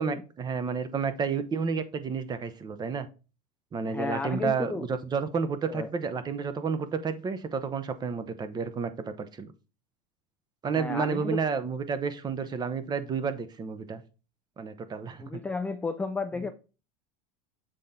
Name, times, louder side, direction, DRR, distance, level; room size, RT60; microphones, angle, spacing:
voice 1, 0.0-3.1 3.7-9.5 10.6-14.0 14.6-15.4 16.3-16.5, right 5 dB, 20° right, 0.8 m, -31 dB
voice 2, 3.9-4.9 5.7-5.9 10.7-11.4 15.2-16.5, left 4 dB, 5° left, 0.3 m, -33 dB
7.6 x 4.2 x 3.7 m
supercardioid pair, 130°, 19 cm